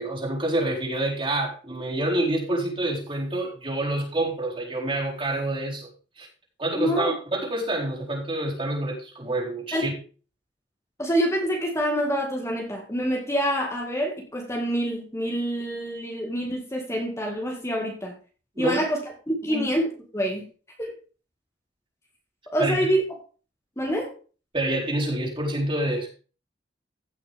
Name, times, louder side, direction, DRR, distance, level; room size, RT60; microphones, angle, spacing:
voice 1, 0.0-5.9 6.2-6.3 6.6-9.9 18.6-18.8 19.5-19.7 22.6-22.8 24.5-26.1, right 1 dB, 30° right, -3 dB, 4.4 m, -27 dB
voice 2, 6.7-7.1 9.7-10.0 11.0-18.1 18.6-20.4 20.8-20.9 22.5-23.0 23.8-24.1, equal, 15° left, 0 dB, 2.1 m, -26 dB
16.0 x 6.4 x 3.6 m, 0.37 s
head